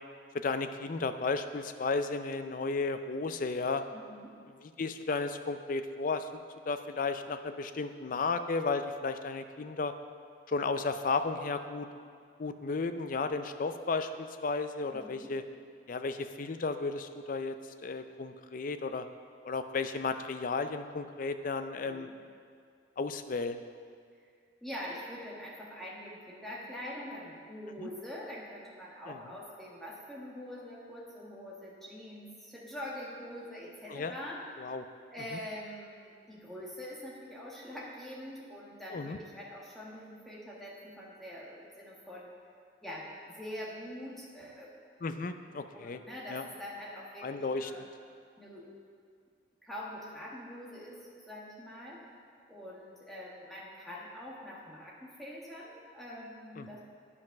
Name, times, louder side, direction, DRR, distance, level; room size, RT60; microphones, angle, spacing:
voice 1, 0.3-3.8 4.6-6.4 6.7-9.9 10.5-11.9 12.4-15.4 15.9-17.5 17.8-19.1 19.4-22.1 23.0-23.6 29.1-29.2 33.9-34.1 34.6-34.8 35.3-35.4 38.9-39.2 45.0-46.0 46.3-46.4 47.2-47.7 56.6-56.7, left 4 dB, 45° left, 9 dB, 0.4 m, -33 dB
voice 2, 3.9-4.3 14.9-15.3 21.7-22.1 24.6-34.7 35.1-42.3 42.8-44.7 45.7-47.8 48.4-48.7 49.6-52.0 52.5-56.8, left 1 dB, ahead, -6 dB, 1.5 m, -44 dB
9.7 x 5.3 x 5.8 m, 2.2 s
head